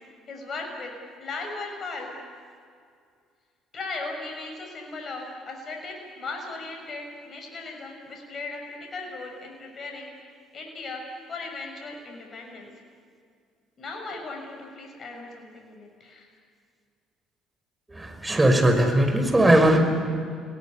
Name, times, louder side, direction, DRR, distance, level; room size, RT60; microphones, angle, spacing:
voice 1, 0.3-0.9 1.2-2.1 3.7-10.1 10.5-11.0 11.3-12.7 13.8-16.3, left 3 dB, 45° left, 2 dB, 6.6 m, -37 dB
voice 2, 17.9-19.8, right 1 dB, 15° right, 5 dB, 5.6 m, -19 dB
30.0 x 18.0 x 9.9 m, 2.2 s
hypercardioid pair, 55°, 0 cm